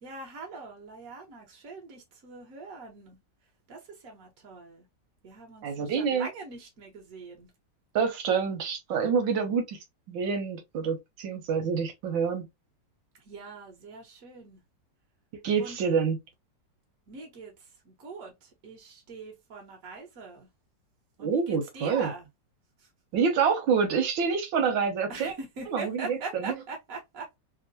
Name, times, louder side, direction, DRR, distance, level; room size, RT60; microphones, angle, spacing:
voice 1, 0.0-3.2 3.7-4.9 5.2-7.5 13.2-14.6 15.6-15.8 17.1-20.5 21.2-22.3 22.8-22.9 25.1-27.4, right 4 dB, 50° right, 1.5 m, -42 dB
voice 2, 5.6-6.3 7.9-9.8 10.1-12.5 15.4-16.2 21.2-22.1 23.1-25.3 25.7-26.6, right 6 dB, 85° right, 1.5 m, -27 dB
3.5 x 2.2 x 2.7 m
omnidirectional pair, 2.0 m